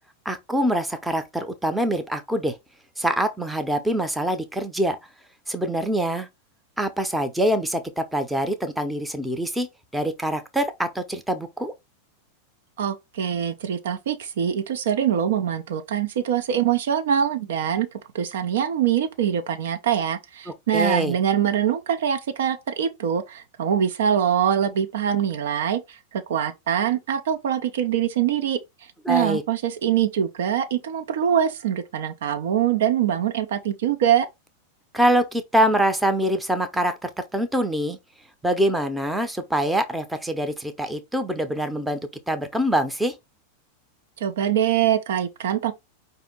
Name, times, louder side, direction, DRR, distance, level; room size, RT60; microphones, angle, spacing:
voice 1, 0.2-2.5 3.0-5.0 5.5-6.3 6.8-11.7 20.5-21.1 29.0-29.4 34.9-38.0 38.4-42.0 42.3-43.1, right 1 dB, 5° right, 0.7 m, -24 dB
voice 2, 12.8-17.9 18.1-28.6 29.1-34.3 44.2-45.7, right 9 dB, 60° right, 0.6 m, -23 dB
5.0 x 2.7 x 3.9 m
figure-of-eight pair, 90°, 0 cm